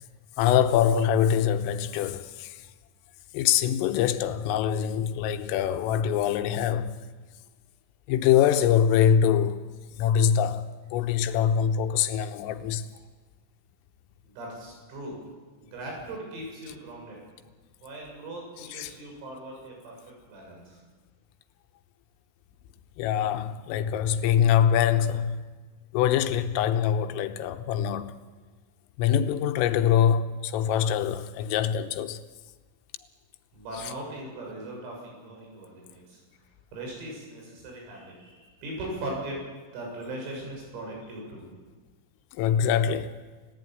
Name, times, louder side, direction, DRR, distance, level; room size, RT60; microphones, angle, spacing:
voice 1, 0.4-2.6 3.3-6.9 8.1-9.6 10.0-12.8 18.7-18.9 23.0-25.4 25.9-28.1 29.0-32.2 33.8-33.9 42.4-43.2, left 9 dB, 85° left, 3.6 m, -24 dB
voice 2, 14.2-15.2 15.7-17.2 17.8-20.0 20.3-20.8 33.5-36.2 36.7-39.4 39.7-41.4, right 1 dB, 90° right, 10.0 m, -39 dB
29.5 x 15.0 x 9.5 m
omnidirectional pair, 5.9 m